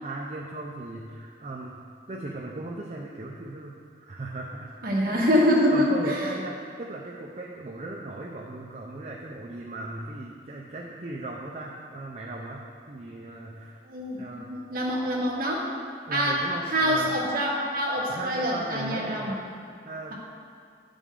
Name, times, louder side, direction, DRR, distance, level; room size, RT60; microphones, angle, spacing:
voice 1, 0.0-4.7 5.1-5.3 5.7-13.8 14.2-14.5 16.1-17.1 18.1-20.1, right 2 dB, 40° right, -2 dB, 0.5 m, -37 dB
voice 2, 4.8-6.3 13.8-15.7 16.1-19.3, equal, 55° right, -4 dB, 1.4 m, -25 dB
9.5 x 5.1 x 3.7 m, 2.1 s
head